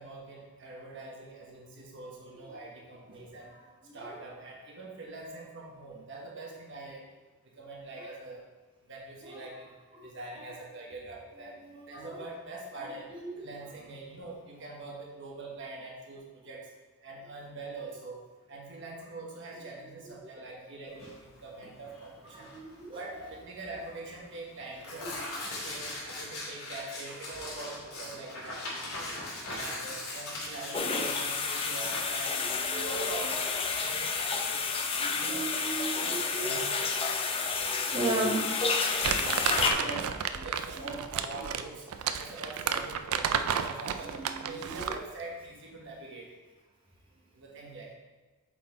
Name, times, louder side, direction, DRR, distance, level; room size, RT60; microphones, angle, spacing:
voice 1, 0.0-3.6 3.9-7.0 7.4-8.4 8.9-9.7 10.0-11.6 11.9-16.7 17.0-18.2 18.5-22.5 22.9-29.1 29.5-32.3 32.7-33.5 33.8-34.7 35.1-36.6 38.9-41.9 42.2-46.3 47.3-47.9, right 2 dB, 55° right, -2 dB, 1.2 m, -44 dB
voice 2, 11.4-12.2 12.8-13.5 20.6-20.7 22.3-23.3 25.0-25.2 30.8-31.0 32.3-33.1 34.8-36.9 37.4-38.5 39.2-39.3 39.8-40.0 40.8-41.0 44.1-45.0, right 2 dB, 20° right, -4 dB, 1.0 m, -37 dB
Tearing, 20.9-35.2, left 2 dB, 80° left, 2.3 m, -41 dB
sound 1, 30.7-39.7, left 5 dB, 25° left, 0.5 m, -30 dB
Crumpling crinkling, 39.0-45.1, right 7 dB, 80° right, 0.4 m, -32 dB
7.4 x 4.3 x 4.2 m, 1.3 s
head